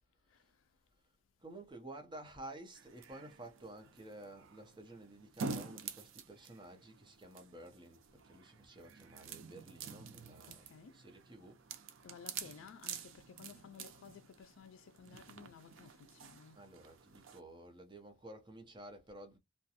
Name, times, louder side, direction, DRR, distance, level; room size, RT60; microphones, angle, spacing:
voice 1, 1.4-11.6 16.6-19.4, right 1 dB, 20° right, 0.6 m, -52 dB
sound 1, 2.7-17.4, right 5 dB, 75° right, 0.5 m, -49 dB
voice 2, 10.5-10.9 12.0-16.6, left 6 dB, 70° left, 0.3 m, -55 dB
2.4 x 2.2 x 2.7 m
head